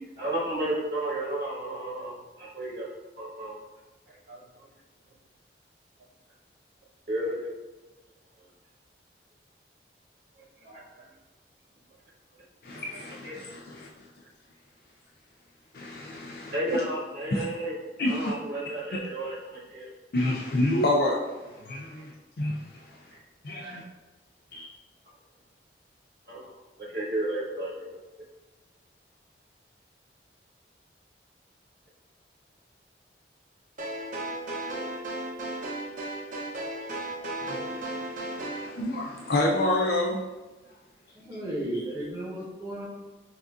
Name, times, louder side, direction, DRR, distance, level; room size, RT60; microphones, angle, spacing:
voice 1, 0.0-2.9 3.2-3.6 4.3-4.4 7.1-7.5 10.6-11.1 12.7-12.8 13.2-13.4 16.5-17.8 18.0-19.9 23.6-23.8 26.3-26.5 26.8-28.0, right 1 dB, 70° right, -7 dB, 1.1 m, -32 dB
voice 2, 12.6-13.9 15.7-16.8 17.3-17.4 18.0-18.3 20.1-21.2 21.7-22.1 22.4-22.8 23.4-23.8 24.5-24.7 37.4-40.2, left 1 dB, 60° left, -2 dB, 0.4 m, -28 dB
sound 1, 33.8-38.7, right 1 dB, 45° right, 0.6 m, -35 dB
voice 3, 41.1-42.9, right 1 dB, 15° right, -6 dB, 0.9 m, -34 dB
6.0 x 2.6 x 2.4 m, 1.2 s
head